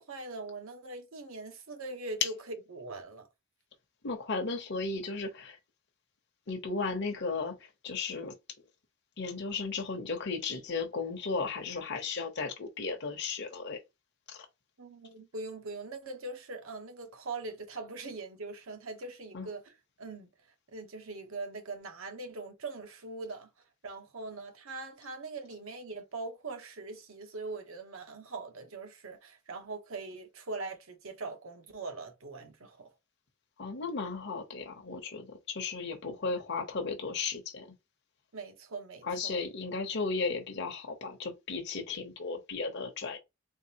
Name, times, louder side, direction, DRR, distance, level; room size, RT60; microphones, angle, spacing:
voice 1, 0.0-3.3 14.8-20.3 20.7-23.5 23.8-32.9 38.3-39.4, right 3 dB, 65° right, 0.9 m, -42 dB
voice 2, 4.0-5.6 6.5-7.5 7.8-8.3 9.2-13.8 14.3-14.5 19.3-19.5 33.6-37.7 39.0-43.2, left 4 dB, 50° left, 0.8 m, -35 dB
3.8 x 3.7 x 2.8 m
head